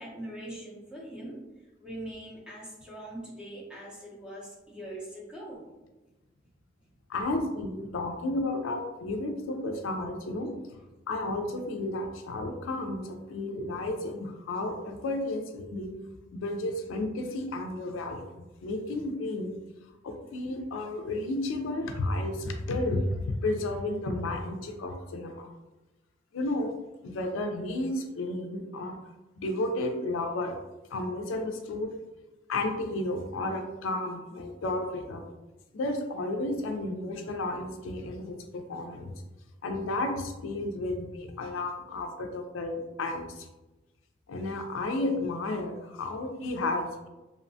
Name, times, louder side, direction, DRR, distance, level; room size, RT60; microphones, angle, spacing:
voice 1, 0.0-1.4 1.8-5.7, right 1 dB, 5° right, -5 dB, 0.6 m, -42 dB
voice 2, 7.1-10.5 11.1-15.9 16.3-18.2 18.6-19.5 20.0-25.5 26.3-26.7 27.0-29.0 29.3-30.6 30.9-31.9 32.5-35.2 35.7-39.1 39.6-43.5 44.3-47.1, left 2 dB, 80° left, 4 dB, 0.4 m, -32 dB
2.7 x 2.1 x 2.6 m, 1.1 s
head